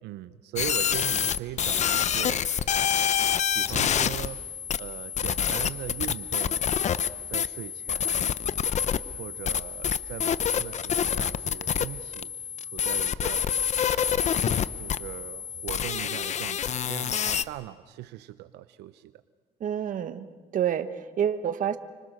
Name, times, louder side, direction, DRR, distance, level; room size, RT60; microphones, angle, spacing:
voice 1, 0.0-2.4 3.5-4.5 4.8-6.6 7.3-8.3 9.1-12.3 12.6-13.5 13.8-14.3 14.8-19.2, right 14 dB, 85° right, 12 dB, 0.7 m, -40 dB
sound 1, 0.6-17.4, left 8 dB, 45° left, 0.8 m, -27 dB
voice 2, 19.6-20.3 20.5-21.8, right 9 dB, 50° right, 11 dB, 1.4 m, -28 dB
30.0 x 25.0 x 6.6 m, 1.5 s
cardioid pair, 110°, 17 cm